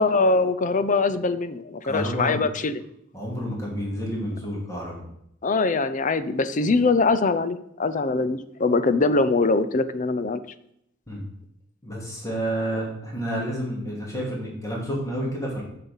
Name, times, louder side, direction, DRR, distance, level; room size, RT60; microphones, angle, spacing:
voice 1, 0.0-2.7 5.4-10.4, left 3 dB, 40° left, 12 dB, 0.6 m, -22 dB
voice 2, 1.9-2.4 3.1-5.0 11.1-11.2 11.8-15.6, equal, 15° left, -3 dB, 2.9 m, -29 dB
7.4 x 5.8 x 7.1 m, 0.75 s
head